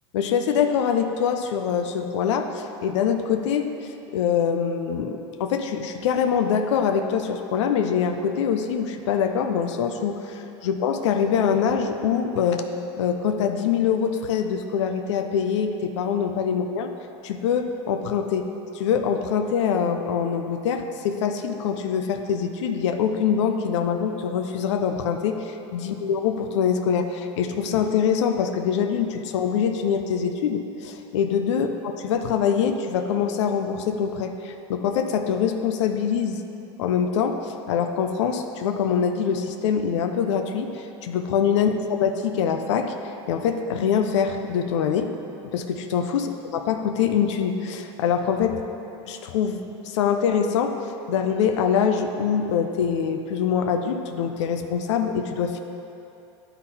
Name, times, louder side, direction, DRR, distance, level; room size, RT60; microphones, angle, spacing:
voice 1, 0.1-3.7 4.1-12.7 13.0-16.9 17.2-18.5 18.7-36.4 36.8-41.7 42.0-45.1 45.5-48.6 49.1-50.8 51.1-55.6, left 7 dB, 85° left, 6 dB, 0.5 m, -24 dB
9.7 x 3.9 x 4.1 m, 2.8 s
supercardioid pair, 120°, 15 cm